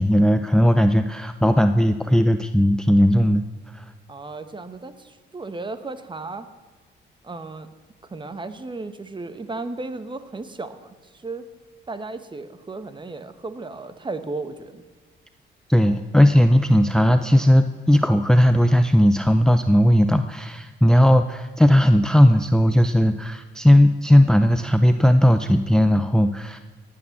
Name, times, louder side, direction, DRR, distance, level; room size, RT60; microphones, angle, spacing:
voice 1, 0.0-3.4 3.7-3.8 15.7-26.6, equal, 5° left, 9 dB, 0.6 m, -17 dB
voice 2, 4.1-6.5 7.2-7.7 8.1-10.9 11.2-11.5 11.9-14.8, right 3 dB, 25° right, 11 dB, 1.2 m, -34 dB
18.0 x 8.7 x 7.2 m, 1.4 s
cardioid pair, 90°, 20 cm